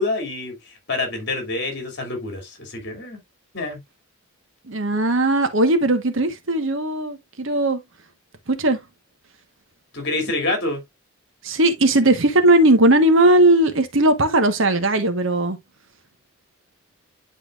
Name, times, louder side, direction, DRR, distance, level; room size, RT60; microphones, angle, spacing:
voice 1, 0.0-3.2 3.5-3.8 9.9-10.8, left 2 dB, 50° left, 2.6 m, -27 dB
voice 2, 4.7-7.8 8.5-8.8 11.4-15.6, right 1 dB, 60° right, 1.2 m, -18 dB
10.0 x 4.4 x 2.4 m
head